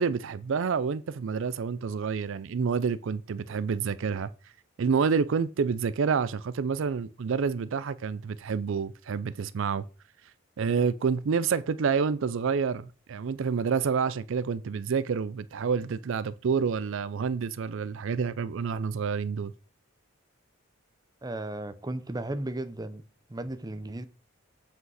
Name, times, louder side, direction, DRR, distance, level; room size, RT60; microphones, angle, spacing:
voice 1, 0.0-4.3 4.8-9.8 10.6-19.5, right 6 dB, 70° right, 0.4 m, -28 dB
voice 2, 21.2-23.0 23.3-24.1, right 1 dB, 20° right, 0.6 m, -35 dB
7.9 x 5.3 x 4.8 m
head